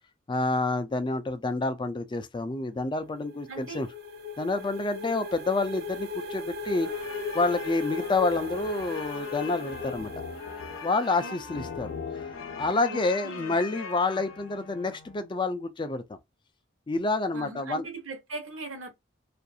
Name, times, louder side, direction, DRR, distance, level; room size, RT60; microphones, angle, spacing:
voice 1, 0.3-3.9 4.4-6.9 7.3-10.1 10.8-11.9 12.2-12.3 12.6-16.0 16.9-17.9, left 3 dB, 25° left, 0.3 m, -28 dB
sound 1, 3.0-11.7, left 3 dB, 50° right, 0.6 m, -38 dB
voice 2, 3.5-3.9 11.2-11.4 12.9-13.6 17.3-18.9, right 3 dB, 85° right, 0.9 m, -40 dB
sound 2, 6.8-14.6, left 6 dB, 80° left, 0.5 m, -41 dB
Wind instrument woodwind instrument, 7.5-15.4, left 2 dB, 40° left, 0.7 m, -48 dB
2.5 x 2.3 x 2.6 m
head